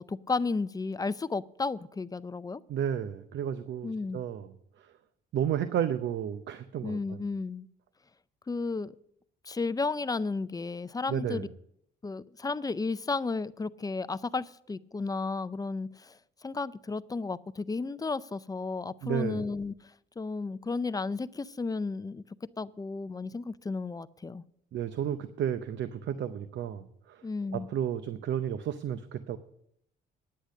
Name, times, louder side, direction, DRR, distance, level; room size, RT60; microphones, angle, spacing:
voice 1, 0.0-2.6 3.8-4.2 6.8-7.7 8.5-8.9 9.4-11.5 12.0-19.8 20.2-24.4 27.2-27.7, left 3 dB, 20° left, 15 dB, 0.4 m, -33 dB
voice 2, 2.7-4.5 5.3-7.2 11.1-11.5 19.0-19.4 24.7-27.2 27.5-29.4, right 9 dB, 65° right, 12 dB, 0.7 m, -32 dB
10.0 x 8.5 x 6.4 m, 0.71 s
cardioid pair, 90°, 20 cm